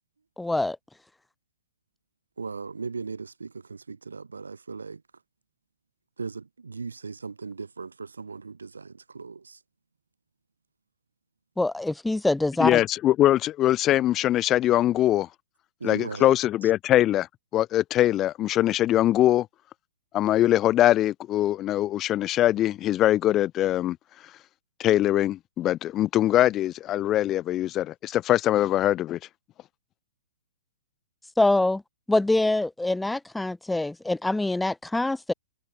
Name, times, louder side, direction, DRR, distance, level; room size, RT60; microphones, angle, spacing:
voice 1, 0.4-0.8 11.6-12.8 31.4-31.8 32.1-35.3, left 2 dB, 5° left, 2.2 m, -24 dB
voice 2, 2.4-5.0 6.2-9.6 15.8-16.3, right 4 dB, 80° right, 7.7 m, -37 dB
voice 3, 12.6-15.3 15.8-17.3 17.5-19.5 20.1-24.0 24.8-29.2, left 13 dB, 30° left, 1.9 m, -22 dB
figure-of-eight pair, 110°, 0 cm